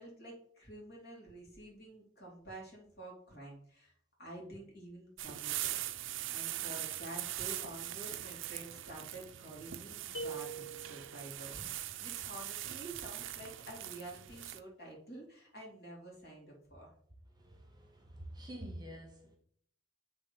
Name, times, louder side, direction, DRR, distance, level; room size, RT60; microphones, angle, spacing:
voice 1, 0.0-3.9 4.2-5.8 6.3-16.9, right 1 dB, 50° left, 2.9 m, -49 dB
sound 1, 5.2-14.6, right 13 dB, 60° right, 0.5 m, -41 dB
sound 2, 10.1-11.3, right 3 dB, 80° left, 2.3 m, -43 dB
voice 2, 17.4-19.4, right 1 dB, 20° right, 1.2 m, -47 dB
8.2 x 3.6 x 5.4 m
head